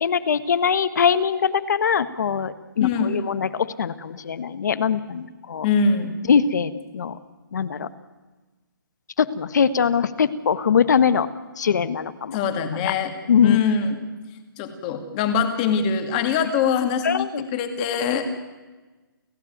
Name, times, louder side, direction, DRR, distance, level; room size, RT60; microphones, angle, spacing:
voice 1, 0.0-5.6 6.3-7.2 7.5-7.9 9.2-11.3 11.6-12.4 12.8-12.9 13.3-13.6 17.0-17.4, left 7 dB, 50° left, 14 dB, 1.5 m, -22 dB
voice 2, 2.8-3.2 5.6-6.2 12.3-13.1 13.4-14.0 14.6-18.3, left 6 dB, 20° left, 7 dB, 2.2 m, -23 dB
30.0 x 15.0 x 9.4 m, 1.2 s
hypercardioid pair, 170°, 12 cm